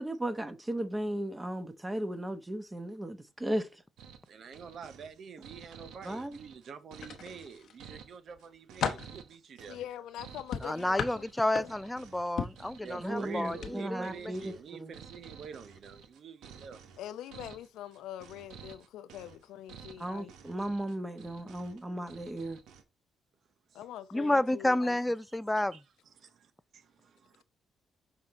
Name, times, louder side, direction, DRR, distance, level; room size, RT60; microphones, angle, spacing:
voice 1, 0.0-3.8 6.0-6.4 13.0-14.9 20.0-22.6, right 1 dB, 15° right, 1.0 m, -36 dB
sound 1, 4.0-22.8, right 7 dB, 85° right, 1.0 m, -52 dB
voice 2, 4.3-9.8 12.4-12.5 12.8-16.8 23.7-23.8 25.7-25.8 26.2-27.4, right 6 dB, 60° right, 0.6 m, -47 dB
sound 2, 7.0-7.8 8.3-9.2 10.5-12.0 12.4-12.7 13.5-13.7 14.1-14.3, left 7 dB, 65° left, 0.9 m, -36 dB
voice 3, 9.7-11.2 11.6-11.7 17.0-20.3 23.7-25.0, left 11 dB, 85° left, 0.6 m, -44 dB
voice 4, 10.6-14.1 24.1-25.8, left 1 dB, 10° left, 0.4 m, -30 dB
6.3 x 3.8 x 4.1 m
cardioid pair, 90°, 0 cm